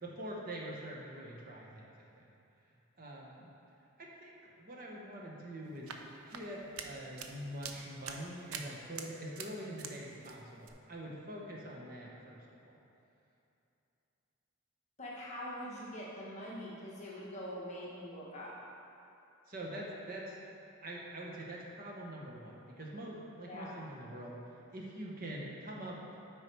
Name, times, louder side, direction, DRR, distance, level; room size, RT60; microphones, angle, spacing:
voice 1, 0.0-2.2 3.0-3.5 4.0-5.9 6.3-12.7 19.5-20.4 20.8-24.4 24.7-26.0, right 1 dB, 40° right, -3 dB, 1.1 m, -44 dB
sound 1, 5.6-10.0 10.2-10.7, right 6 dB, 85° right, 0.6 m, -46 dB
voice 2, 15.0-18.5 23.5-23.8, equal, 35° left, -6 dB, 1.2 m, -43 dB
8.1 x 4.9 x 4.6 m, 2.8 s
head